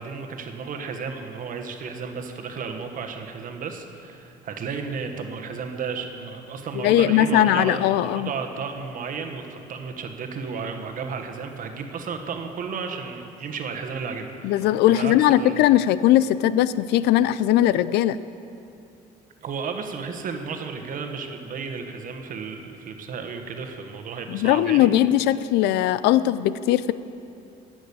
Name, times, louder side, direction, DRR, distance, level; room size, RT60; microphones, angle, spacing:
voice 1, 0.0-15.5 19.4-24.9, right 5 dB, 55° right, 5 dB, 1.3 m, -33 dB
voice 2, 6.8-8.3 14.4-18.2 24.3-26.9, left 12 dB, 85° left, 16 dB, 0.4 m, -19 dB
15.0 x 6.3 x 8.6 m, 2.6 s
cardioid pair, 110°, 17 cm